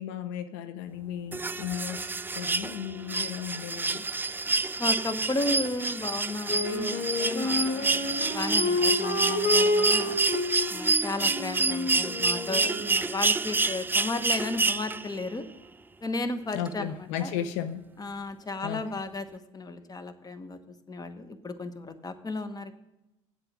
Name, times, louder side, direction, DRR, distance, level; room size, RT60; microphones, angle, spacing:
voice 1, 0.0-4.1 16.5-17.8 18.6-18.8, left 9 dB, 75° left, 11 dB, 0.7 m, -35 dB
sound 1, 1.3-15.2 16.7-16.8, right 3 dB, 10° right, 0.3 m, -28 dB
voice 2, 4.8-10.2 10.7-15.5 16.0-17.3 18.0-20.6 20.9-22.7, left 2 dB, 25° left, 10 dB, 1.1 m, -34 dB
Wind instrument woodwind instrument, 6.5-13.1, left 2 dB, 50° left, 2.8 m, -29 dB
8.6 x 7.9 x 6.0 m, 0.94 s
hypercardioid pair, 70°, 16 cm